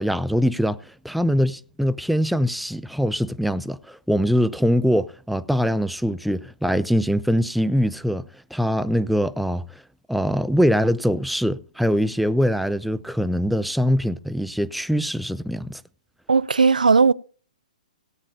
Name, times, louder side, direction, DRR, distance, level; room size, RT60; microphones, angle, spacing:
voice 1, 0.0-9.6 10.1-15.8, equal, ahead, 0.4 m, -23 dB
voice 2, 16.3-17.1, right 4 dB, 90° right, 0.6 m, -16 dB
17.5 x 9.7 x 2.7 m
hypercardioid pair, 130°, 4 cm